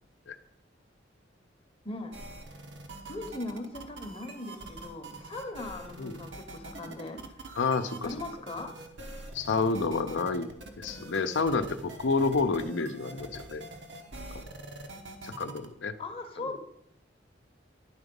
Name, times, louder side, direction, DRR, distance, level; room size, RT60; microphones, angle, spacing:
voice 1, 1.8-2.2 2.5-2.6 3.1-7.2 8.0-8.7 16.0-16.6, left 2 dB, 30° left, 6 dB, 0.8 m, -39 dB
sound 1, 2.1-15.7, right 2 dB, 75° right, 1.0 m, -44 dB
voice 2, 7.6-8.1 9.3-10.5 10.8-13.6 14.3-14.4 15.2-16.0 16.4-16.6, left 4 dB, 80° left, 9 dB, 0.6 m, -29 dB
10.5 x 3.9 x 5.2 m, 0.75 s
head